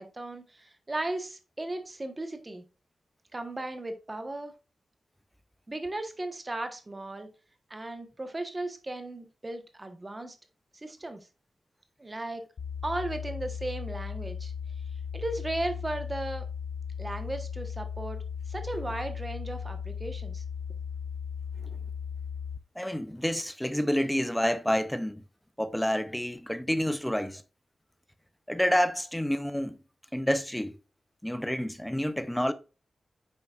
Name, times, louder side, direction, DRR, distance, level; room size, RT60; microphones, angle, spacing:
voice 1, 0.0-2.6 3.3-4.5 5.7-7.3 7.7-10.4 10.7-11.2 12.0-12.4 12.8-14.5 15.1-16.4 17.0-18.2 18.5-20.4, right 2 dB, 20° right, 1.1 m, -36 dB
sound 1, 12.6-22.6, left 7 dB, 60° left, 0.5 m, -37 dB
voice 2, 22.8-25.2 25.6-27.4 28.5-29.8 30.1-30.7 31.2-32.5, equal, 5° left, 0.6 m, -28 dB
9.2 x 6.3 x 2.4 m
wide cardioid pair, 175°, 0 cm